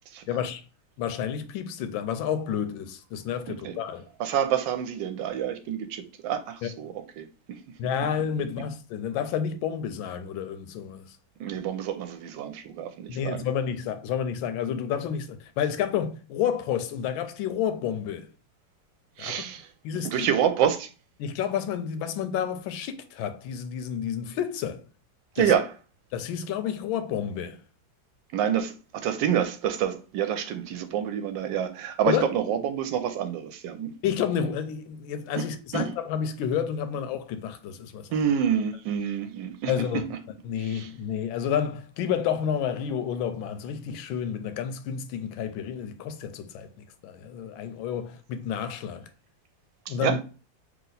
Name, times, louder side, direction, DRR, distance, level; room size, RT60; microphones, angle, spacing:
voice 1, 0.3-0.6 1.0-4.1 6.6-6.7 7.8-11.1 13.1-18.3 19.2-19.5 19.8-20.3 21.2-24.8 25.4-25.5 26.1-27.6 32.1-32.3 34.0-38.1 39.7-40.0 40.4-49.1 49.9-50.2, left 8 dB, 85° left, 1.4 m, -30 dB
voice 2, 4.2-7.6 11.4-13.4 19.2-19.7 20.0-20.9 25.4-25.7 28.3-33.9 35.7-35.9 38.1-40.2 40.6-40.9 49.9-50.2, right 8 dB, 75° right, 1.2 m, -28 dB
3.3 x 3.0 x 3.8 m
omnidirectional pair, 2.1 m